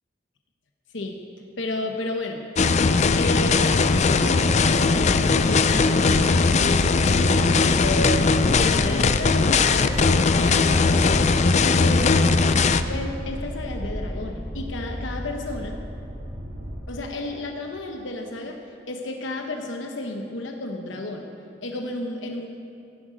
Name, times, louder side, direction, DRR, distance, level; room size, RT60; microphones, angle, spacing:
voice 1, 1.6-2.5 3.2-11.1 11.6-12.3 12.9-15.8 16.9-18.6 18.9-21.3 21.6-22.5, left 2 dB, 80° left, 3 dB, 1.0 m, -32 dB
sound 1, 2.6-12.8, left 4 dB, 40° left, 0.4 m, -19 dB
sound 2, 3.1-16.8, equal, 70° right, 2.5 m, -34 dB
16.0 x 10.5 x 5.1 m, 2.5 s
head